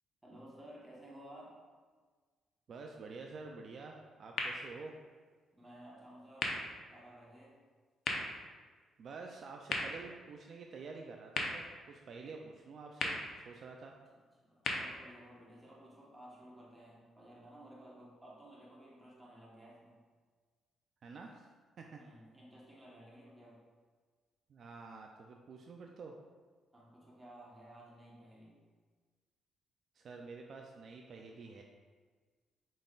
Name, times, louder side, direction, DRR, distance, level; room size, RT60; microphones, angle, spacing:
voice 1, 0.2-1.6 5.5-7.6 14.1-20.0 22.0-23.6 26.7-28.6, right 1 dB, 15° right, -4 dB, 1.2 m, -55 dB
voice 2, 2.7-5.0 9.0-14.0 21.0-21.5 21.8-22.0 24.5-26.2 29.9-31.6, right 4 dB, 55° right, 1 dB, 0.4 m, -49 dB
sound 1, 4.3-16.2, left 3 dB, 65° left, 0.6 m, -43 dB
5.1 x 3.8 x 2.4 m, 1.5 s
cardioid pair, 90°, 0 cm